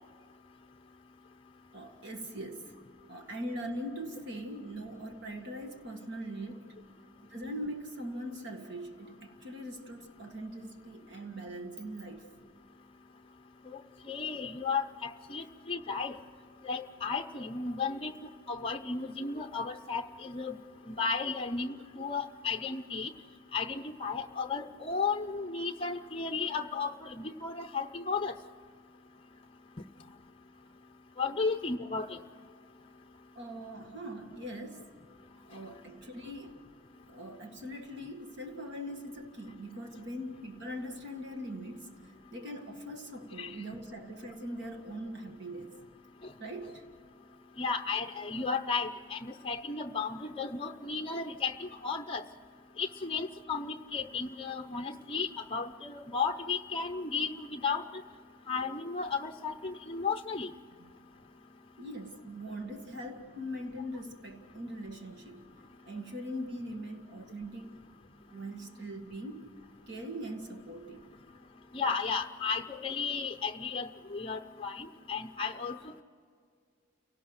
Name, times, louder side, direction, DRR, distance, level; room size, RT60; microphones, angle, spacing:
voice 1, 1.7-2.8 3.1-6.8 7.3-12.3 33.4-34.9 35.5-36.6 37.1-45.7 46.4-46.8 60.8-60.9 61.8-65.5 65.9-67.8 68.3-69.5 69.9-71.1, equal, 55° right, 4 dB, 1.9 m, -41 dB
voice 2, 14.1-16.2 16.6-18.1 18.5-20.6 20.9-23.1 23.5-28.3 31.2-32.2 43.4-43.5 47.6-52.3 52.8-57.8 58.5-60.5 71.7-76.0, left 5 dB, 25° left, 5 dB, 0.6 m, -34 dB
29.5 x 18.0 x 6.5 m, 2.1 s
head